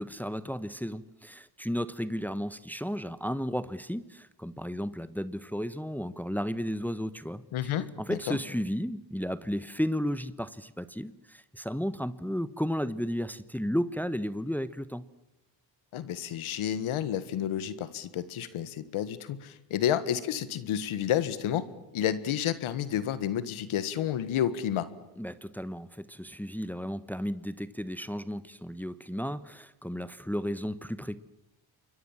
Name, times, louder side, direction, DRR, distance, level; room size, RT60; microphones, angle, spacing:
voice 1, 0.0-15.0 25.2-31.2, equal, 5° left, 14 dB, 1.3 m, -33 dB
voice 2, 7.5-8.4 15.9-21.7 21.9-24.9, left 10 dB, 90° left, 14 dB, 1.7 m, -30 dB
28.0 x 23.0 x 7.4 m, 0.93 s
supercardioid pair, 55°, 48 cm